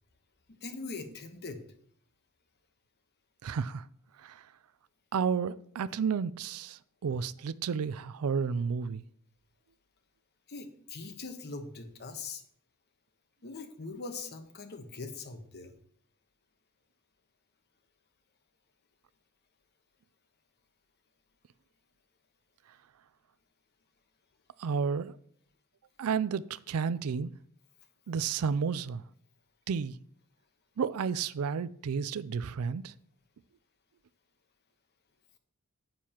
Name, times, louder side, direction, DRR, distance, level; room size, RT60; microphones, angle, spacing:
voice 1, 0.6-1.6 10.5-12.4 13.4-15.7, left 3 dB, 50° left, 1.1 m, -41 dB
voice 2, 3.4-3.8 4.2-4.3 5.1-9.0 24.6-25.1 26.0-27.3 28.1-29.0 29.7-29.9 30.8-32.9, right 6 dB, 70° right, 0.4 m, -31 dB
9.4 x 9.0 x 2.9 m
head